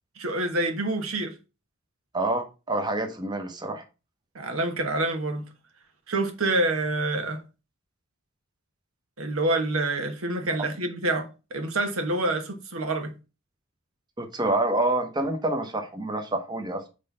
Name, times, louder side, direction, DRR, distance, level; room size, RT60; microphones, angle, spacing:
voice 1, 0.2-1.3 4.3-5.5 6.1-7.4 9.2-13.1, right 2 dB, 85° right, 1.2 m, -27 dB
voice 2, 2.1-3.8 14.2-16.8, right 2 dB, 20° right, 1.0 m, -27 dB
6.1 x 3.3 x 5.6 m
head